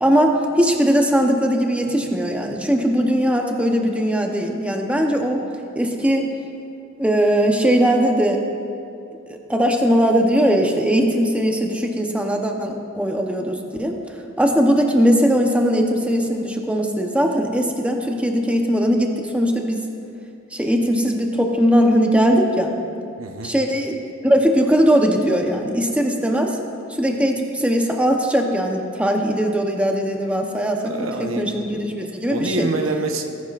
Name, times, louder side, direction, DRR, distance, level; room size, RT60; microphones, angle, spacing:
voice 1, 0.0-5.4 5.7-6.3 7.0-8.4 9.3-14.0 14.4-19.9 20.5-22.7 23.4-26.6 26.9-30.9 31.4-32.7, equal, 5° right, 2 dB, 0.8 m, -19 dB
voice 2, 23.2-23.5 30.8-31.5 32.3-33.3, right 2 dB, 80° right, 5 dB, 0.9 m, -26 dB
18.5 x 11.0 x 2.5 m, 2.5 s
head